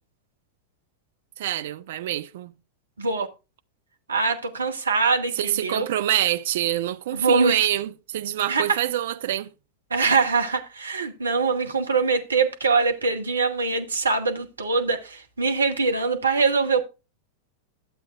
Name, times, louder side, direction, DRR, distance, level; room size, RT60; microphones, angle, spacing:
voice 1, 1.4-2.5 5.4-9.5, right 12 dB, 55° right, 0.5 m, -26 dB
voice 2, 4.1-5.9 7.1-7.6 8.5-8.8 9.9-16.8, right 4 dB, 75° right, 1.2 m, -23 dB
12.0 x 7.7 x 2.5 m
figure-of-eight pair, 90°, 0 cm